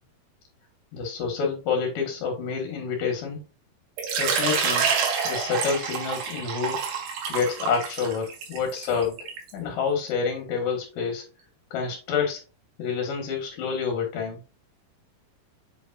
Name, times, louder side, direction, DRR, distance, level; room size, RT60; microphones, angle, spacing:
voice 1, 0.9-3.4 4.2-4.9 5.2-6.8 7.3-9.2 9.5-11.2 11.7-12.4 12.8-14.4, left 6 dB, 65° left, 1 dB, 2.8 m, -28 dB
Water / Liquid, 4.0-9.5, right 6 dB, 75° right, 3.6 m, -27 dB
7.7 x 5.0 x 2.4 m, 0.31 s
omnidirectional pair, 4.7 m